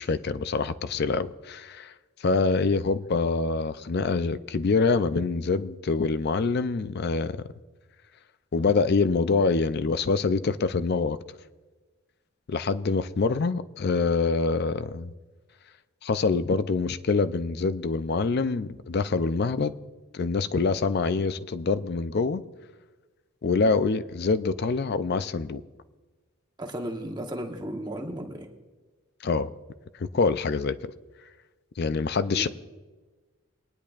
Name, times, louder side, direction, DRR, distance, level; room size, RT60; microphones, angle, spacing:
voice 1, 0.0-1.9 2.2-7.4 8.5-11.2 12.5-15.1 16.0-19.8 20.1-22.4 23.4-25.6 29.2-29.5 30.0-30.9 31.8-32.5, left 4 dB, 45° left, 0.4 m, -25 dB
voice 2, 26.6-28.5 32.3-32.5, right 1 dB, 20° right, 1.0 m, -34 dB
20.5 x 10.0 x 2.4 m
head